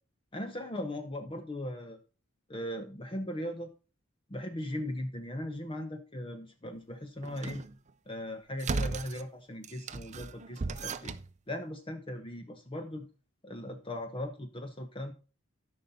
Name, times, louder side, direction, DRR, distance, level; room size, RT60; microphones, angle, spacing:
voice 1, 0.3-2.0 2.5-3.7 4.3-7.6 8.1-11.1 11.5-13.1 13.4-15.1, left 1 dB, 25° left, 6 dB, 0.8 m, -38 dB
sound 1, 7.2-7.7 8.6-9.2 9.6-11.3, right 3 dB, 35° right, 0.5 m, -36 dB
13.0 x 5.6 x 4.1 m, 0.35 s
head